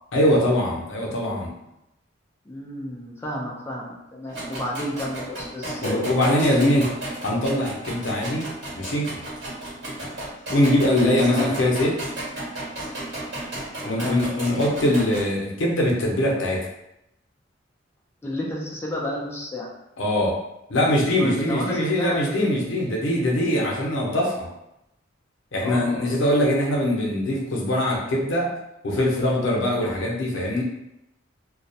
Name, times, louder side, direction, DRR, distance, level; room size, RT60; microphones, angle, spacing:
voice 1, 0.1-1.5 5.8-6.9 7.2-9.1 10.5-11.9 13.8-16.7 20.0-20.4 20.7-24.5 25.5-28.5 28.8-30.6, left 1 dB, 80° left, -2 dB, 0.6 m, -22 dB
voice 2, 2.5-6.8 11.2-11.6 13.8-14.2 18.2-19.7 21.2-22.2 25.6-26.1, left 1 dB, 15° left, -3 dB, 0.3 m, -31 dB
sound 1, 4.3-15.3, right 1 dB, 60° right, 1.3 m, -34 dB
2.3 x 2.0 x 2.7 m, 0.85 s
head